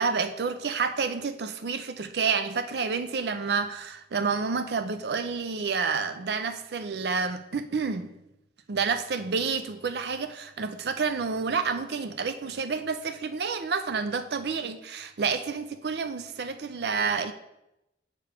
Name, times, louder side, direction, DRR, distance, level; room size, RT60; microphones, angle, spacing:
voice 1, 0.0-8.1 8.7-17.3, right 5 dB, 70° right, 9 dB, 0.5 m, -29 dB
6.8 x 4.6 x 6.5 m, 0.88 s
head